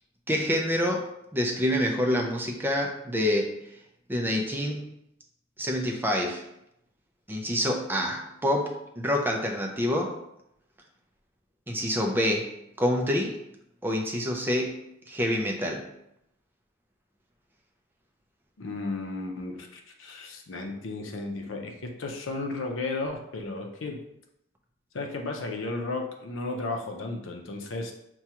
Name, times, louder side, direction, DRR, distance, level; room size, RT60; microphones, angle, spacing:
voice 1, 0.3-3.6 4.1-4.9 5.6-6.4 7.3-10.2 11.7-13.4 13.8-15.9, left 1 dB, 10° right, 1 dB, 0.4 m, -27 dB
voice 2, 18.6-24.0 24.9-27.9, left 3 dB, 80° left, 2 dB, 0.6 m, -34 dB
5.9 x 2.3 x 2.9 m, 0.79 s
head